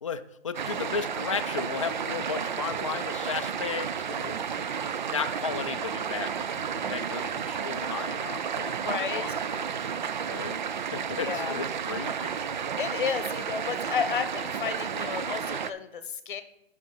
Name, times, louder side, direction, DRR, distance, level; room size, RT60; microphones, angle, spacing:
voice 1, 0.0-4.4 5.1-9.7 10.3-10.6 10.9-12.3, left 6 dB, 30° left, 7 dB, 0.4 m, -35 dB
sound 1, 0.5-15.7, right 7 dB, 45° right, 0.5 m, -32 dB
voice 2, 8.7-9.3 11.2-11.5 12.7-16.4, left 7 dB, 50° left, 12 dB, 1.0 m, -32 dB
10.0 x 6.0 x 5.4 m, 0.80 s
hypercardioid pair, 170°, 32 cm